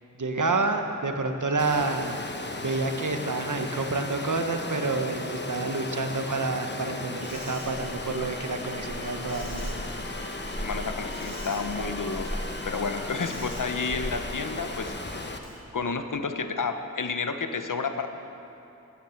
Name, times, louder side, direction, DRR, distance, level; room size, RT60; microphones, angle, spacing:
voice 1, 0.1-2.2 2.6-9.7, right 3 dB, 70° right, 6 dB, 1.0 m, -28 dB
Water, 1.6-15.4, left 2 dB, 35° left, 0.9 m, -36 dB
Insect, 7.2-15.6, equal, 55° right, 3.3 m, -39 dB
Trumpet, 8.8-15.5, left 1 dB, 10° left, 1.1 m, -47 dB
voice 2, 10.6-14.9 15.7-18.1, left 4 dB, 75° left, 8 dB, 0.8 m, -31 dB
14.0 x 9.5 x 5.8 m, 2.9 s
wide cardioid pair, 50°, 31 cm